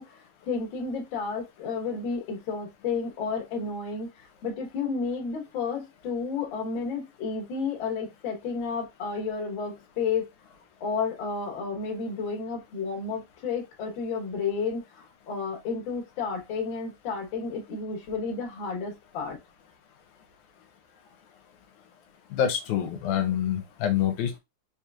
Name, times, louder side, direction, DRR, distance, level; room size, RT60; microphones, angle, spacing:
voice 1, 0.0-10.3 10.8-19.4, left 5 dB, 55° left, 1.5 m, -32 dB
voice 2, 22.3-24.4, left 9 dB, 80° left, 2.0 m, -26 dB
4.9 x 2.9 x 2.3 m
omnidirectional pair, 3.6 m